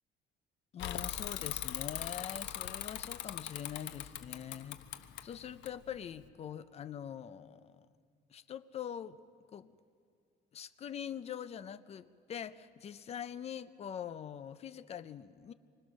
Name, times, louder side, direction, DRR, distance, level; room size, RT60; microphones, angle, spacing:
voice 1, 0.7-4.8 5.2-7.9 8.3-9.2 9.5-9.7 10.5-15.5, left 9 dB, 35° left, 14 dB, 0.6 m, -43 dB
Bicycle / Mechanisms, 0.8-6.3, left 12 dB, 90° left, 1.0 m, -41 dB
26.0 x 25.5 x 6.3 m, 2.3 s
cardioid pair, 170°, 18 cm